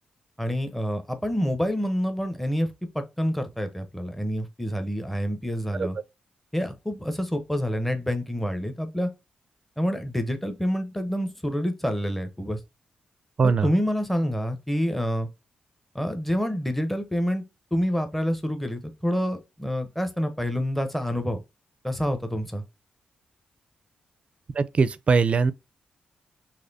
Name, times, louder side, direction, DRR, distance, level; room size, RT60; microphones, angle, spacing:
voice 1, 0.4-2.7 2.9-6.0 6.5-9.1 9.8-12.6 13.4-15.3 15.9-17.4 17.7-21.4 21.8-22.6, equal, 5° left, 0.8 m, -27 dB
voice 2, 13.4-13.7 24.6-25.5, right 5 dB, 45° right, 0.4 m, -21 dB
4.1 x 2.9 x 2.6 m
cardioid pair, 75°, 3 cm